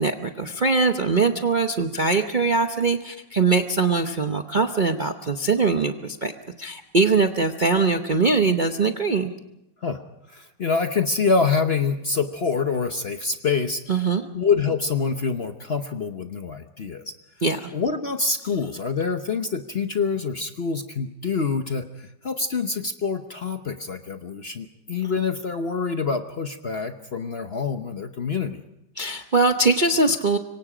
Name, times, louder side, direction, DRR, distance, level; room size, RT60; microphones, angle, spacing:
voice 1, 0.0-6.3 6.6-9.3 13.9-14.2 17.4-17.7 29.0-30.4, right 3 dB, 40° right, 5 dB, 0.7 m, -22 dB
voice 2, 10.3-13.8 14.3-17.0 17.7-28.6, left 5 dB, 45° left, 7 dB, 0.9 m, -26 dB
26.0 x 24.0 x 5.0 m, 0.87 s
omnidirectional pair, 2.0 m